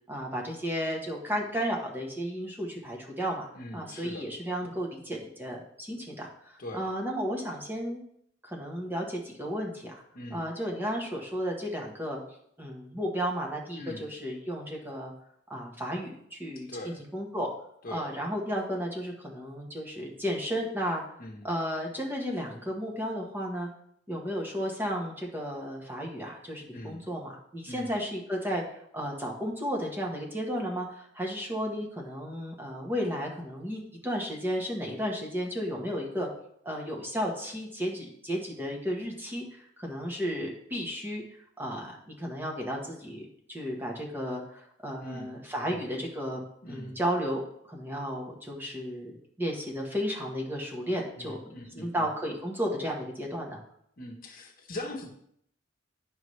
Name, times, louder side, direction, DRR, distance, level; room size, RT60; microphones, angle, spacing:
voice 1, 0.1-3.5 3.7-8.0 8.4-10.0 10.3-12.2 12.6-15.1 15.5-17.5 17.9-21.0 21.4-23.7 24.1-36.3 36.6-47.4 47.7-49.1 49.4-53.6, equal, 10° right, -1 dB, 1.2 m, -33 dB
voice 2, 3.6-4.3 6.6-6.9 10.1-10.5 13.8-14.1 16.7-17.0 17.8-18.1 21.2-21.5 26.7-27.0 27.7-27.9 45.0-45.4 45.7-45.9 46.6-47.0 51.2-52.1 54.0-55.1, left 1 dB, 50° left, 2 dB, 1.0 m, -41 dB
9.4 x 5.4 x 3.2 m, 0.70 s
head